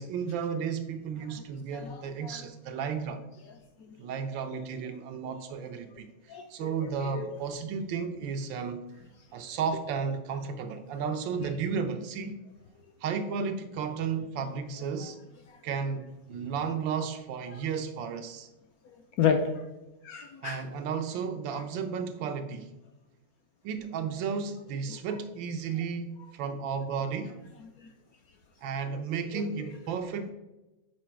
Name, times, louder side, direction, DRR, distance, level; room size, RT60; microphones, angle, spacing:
voice 1, 0.0-3.2 4.0-8.9 9.3-12.3 13.0-15.2 15.6-18.5 20.4-22.7 23.6-27.4 28.6-30.3, right 6 dB, 90° right, 7 dB, 1.4 m, -33 dB
voice 2, 1.7-2.4 3.8-4.0 6.3-7.3 15.5-15.6 17.5-17.6 18.8-19.6 20.0-20.6 21.5-21.6 24.9-25.0 27.8-27.9 29.3-29.4, left 7 dB, 70° left, 5 dB, 0.9 m, -32 dB
6.2 x 4.6 x 4.4 m, 1.0 s
omnidirectional pair, 2.0 m